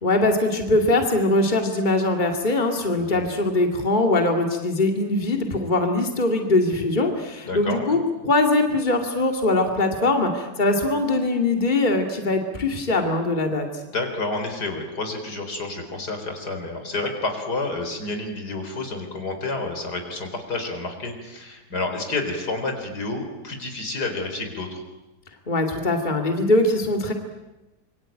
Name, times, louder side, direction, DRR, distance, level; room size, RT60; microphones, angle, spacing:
voice 1, 0.0-8.0 8.2-13.7 25.5-27.1, left 2 dB, 25° left, 4 dB, 2.6 m, -22 dB
voice 2, 3.0-3.4 7.4-8.0 13.9-24.8, left 2 dB, 70° left, 5 dB, 4.7 m, -29 dB
26.5 x 24.0 x 9.1 m, 1.0 s
omnidirectional pair, 1.8 m